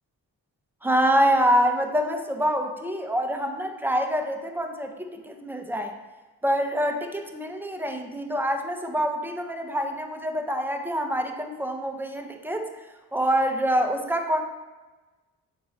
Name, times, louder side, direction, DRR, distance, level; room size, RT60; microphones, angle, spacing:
voice 1, 0.8-5.9 6.4-12.7 13.1-14.4, equal, 5° right, 3 dB, 0.9 m, -26 dB
7.3 x 4.4 x 3.0 m, 1.2 s
supercardioid pair, 40°, 43 cm